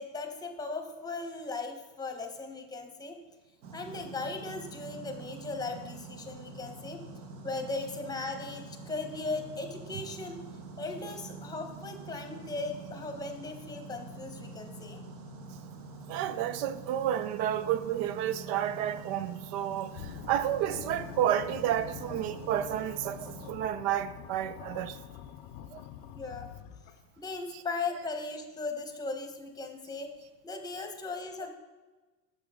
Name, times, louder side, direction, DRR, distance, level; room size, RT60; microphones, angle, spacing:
voice 1, 0.0-3.2 3.7-7.0 7.4-10.4 10.8-15.0 26.1-26.5 27.2-30.1 30.4-31.5, left 3 dB, 10° left, 0.9 m, -38 dB
sound 1, 3.6-23.5, right 3 dB, 60° right, 1.1 m, -46 dB
voice 2, 16.1-25.0 25.7-25.8 27.5-27.6, right 11 dB, 75° right, 0.5 m, -31 dB
sound 2, 19.9-27.2, left 11 dB, 85° left, 0.5 m, -46 dB
6.8 x 6.2 x 3.6 m
supercardioid pair, 115°, 32 cm